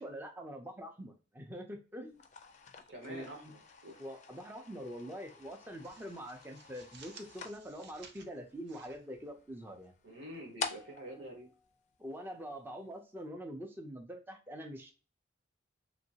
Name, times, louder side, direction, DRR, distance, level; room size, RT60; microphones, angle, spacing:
voice 1, 0.0-2.2 3.1-3.5 4.0-9.9 11.2-11.3 12.0-14.9, equal, 10° right, 3 dB, 0.5 m, -45 dB
sound 1, 2.1-12.5, left 5 dB, 40° left, 0.4 m, -48 dB
voice 2, 2.9-4.0 10.0-11.5, equal, 75° right, 0 dB, 1.3 m, -47 dB
sound 2, 3.6-4.5 4.8-5.0 5.4-9.9, right 5 dB, 55° right, 0.5 m, -58 dB
3.0 x 2.6 x 2.8 m, 0.35 s
head